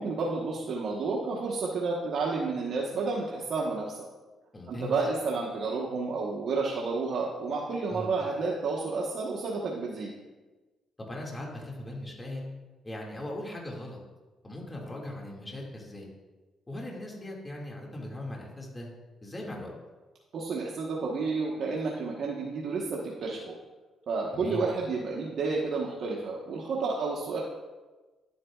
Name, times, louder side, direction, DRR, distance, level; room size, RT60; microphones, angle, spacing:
voice 1, 0.0-4.0 4.7-10.1 20.3-23.6 24.1-27.4, right 4 dB, 60° right, -3 dB, 1.2 m, -31 dB
voice 2, 4.5-4.9 7.9-8.1 11.0-12.5 12.8-14.0 14.4-16.1 16.7-18.9 19.2-19.7 24.3-24.7, left 1 dB, 20° left, -2 dB, 2.1 m, -39 dB
11.0 x 8.5 x 2.4 m, 1.2 s
cardioid pair, 90°, 0 cm